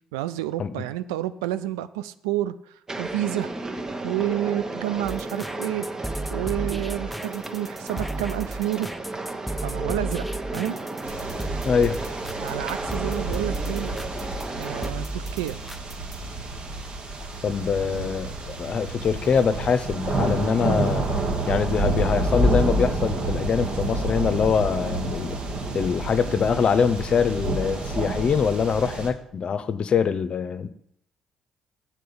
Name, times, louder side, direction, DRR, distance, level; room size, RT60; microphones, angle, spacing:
voice 1, 0.1-3.5 4.0-5.9 6.3-8.9 9.6-10.2 10.5-10.8 12.4-13.9 14.6-15.6, right 14 dB, 85° right, 13 dB, 0.3 m, -29 dB
sound 1, 2.9-14.9, right 2 dB, 25° right, 1.1 m, -34 dB
sound 2, 5.0-16.3, right 1 dB, ahead, 0.5 m, -33 dB
sound 3, 11.0-29.1, right 2 dB, 60° right, 1.7 m, -29 dB
voice 2, 11.6-12.0 17.4-21.1 21.5-25.4 25.7-30.7, left 6 dB, 50° left, 14 dB, 0.7 m, -24 dB
7.7 x 4.5 x 6.9 m, 0.70 s
hypercardioid pair, 45°, 2 cm